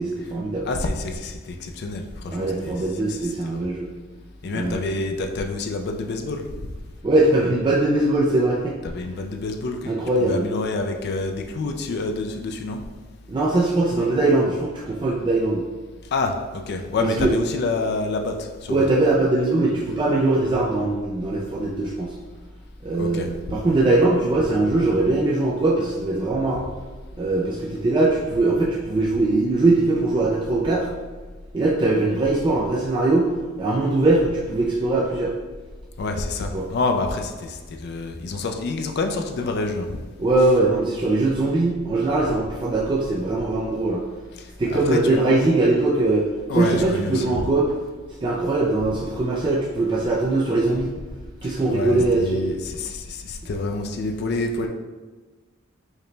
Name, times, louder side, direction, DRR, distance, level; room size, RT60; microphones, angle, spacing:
voice 1, 0.0-0.7 2.3-3.9 4.5-4.8 7.0-8.7 9.9-10.5 13.3-15.6 17.2-17.3 18.7-22.1 22.8-26.7 27.2-30.9 31.5-33.3 33.6-35.3 36.5-36.6 40.2-44.0 44.6-47.7 48.2-50.9 51.4-52.4, right 2 dB, 25° right, -4 dB, 0.3 m, -21 dB
voice 2, 0.6-3.6 4.4-6.5 8.8-12.8 16.1-18.9 23.0-23.6 36.0-40.0 44.4-45.2 46.5-47.5 51.4-54.7, left 3 dB, 55° left, 4 dB, 0.4 m, -28 dB
4.8 x 2.1 x 3.2 m, 1.3 s
head